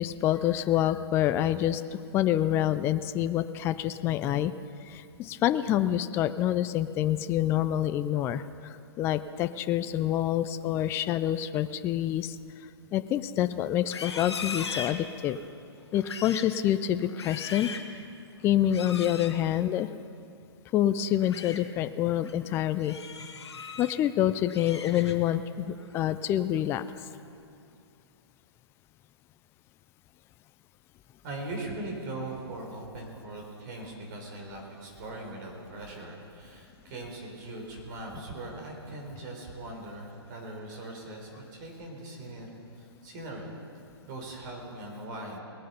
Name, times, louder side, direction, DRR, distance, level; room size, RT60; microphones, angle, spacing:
voice 1, 0.0-4.5 4.8-12.4 12.9-15.4 15.9-17.7 18.4-19.9 20.7-23.0 23.8-26.8, left 12 dB, 15° left, 12 dB, 0.3 m, -27 dB
Livestock farm animals working animals, 13.8-15.5 15.9-16.6 17.0-17.9 18.7-19.3 21.0-21.6 22.1-22.3 22.8-24.0 24.3-25.4 25.8-26.1 26.5-26.9, left 5 dB, 80° left, 1.3 m, -39 dB
voice 2, 31.2-43.5 44.1-45.4, right 2 dB, 45° right, 0 dB, 4.0 m, -40 dB
19.5 x 9.2 x 5.6 m, 2.6 s
hypercardioid pair, 130°, 14 cm